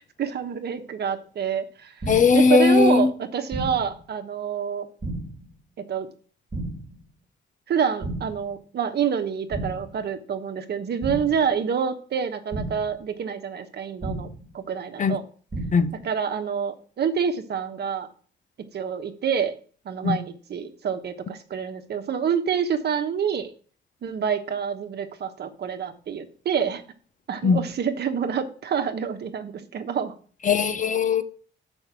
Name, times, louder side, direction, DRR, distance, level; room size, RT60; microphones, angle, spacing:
voice 1, 0.2-1.9 2.3-4.9 5.9-6.1 7.7-15.2 16.0-18.1 18.7-19.5 19.8-23.5 24.0-26.8 27.3-30.2, right 7 dB, 55° right, 1.1 m, -27 dB
sound 1, 2.0-2.5 3.5-4.0 5.0-5.5 6.5-7.0 8.0-8.5 9.5-10.0 11.0-11.5 12.5-13.0 14.0-14.5 15.5-16.0, right 2 dB, 20° right, 1.7 m, -33 dB
voice 2, 2.1-3.1 15.0-15.2 15.7-15.9 20.0-20.2 27.4-27.6 30.4-31.2, left 5 dB, 40° left, 0.9 m, -18 dB
6.6 x 5.4 x 6.0 m
cardioid pair, 90°, 20 cm